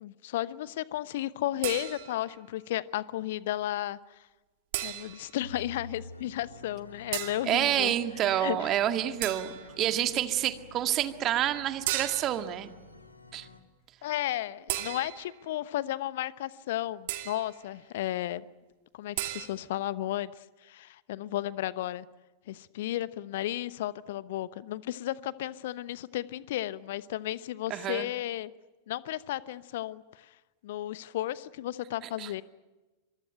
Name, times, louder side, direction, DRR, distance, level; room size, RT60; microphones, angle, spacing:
voice 1, 0.0-4.3 4.8-7.9 8.3-8.8 14.0-18.5 18.9-20.3 20.6-22.1 22.5-28.5 28.9-30.3 30.6-32.4, left 14 dB, 55° left, 18 dB, 1.0 m, -34 dB
sound 1, 1.6-2.3 4.7-5.4 7.1-7.5 9.2-9.8 11.9-12.5 14.7-15.4 17.1-17.6 19.2-19.5, right 15 dB, 50° right, 2.5 m, -35 dB
sound 2, 5.4-13.6, left 1 dB, 80° left, 2.6 m, -50 dB
voice 2, 7.5-12.7 13.3-13.5 27.7-28.1 32.2-32.3, right 12 dB, 35° right, 8 dB, 2.0 m, -28 dB
26.0 x 23.5 x 9.1 m, 1.1 s
figure-of-eight pair, 90°, 0 cm